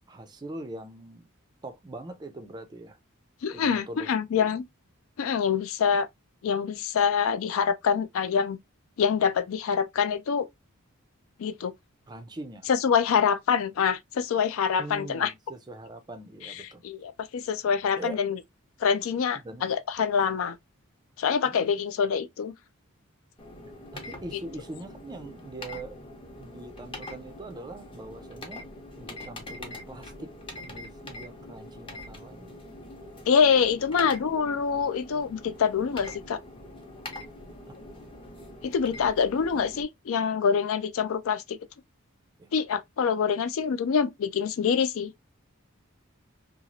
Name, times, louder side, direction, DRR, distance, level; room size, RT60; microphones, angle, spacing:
voice 1, 0.1-1.2 1.6-3.0 3.5-4.1 4.3-4.5 12.1-12.7 14.8-16.8 17.9-18.2 19.4-19.7 21.4-21.8 23.9-26.0 26.3-28.7 28.9-30.3 30.6-32.6 42.4-42.5, right 2 dB, 20° right, 0.4 m, -42 dB
voice 2, 3.4-4.6 5.2-6.1 6.4-8.6 9.0-10.5 11.4-11.7 12.7-15.3 16.4-18.4 18.8-20.6 21.2-22.5 33.3-36.4 38.6-41.6 42.5-45.1, left 6 dB, 65° left, 0.4 m, -25 dB
sound 1, 23.4-39.8, left 1 dB, 25° left, 0.7 m, -44 dB
2.9 x 2.4 x 2.6 m
head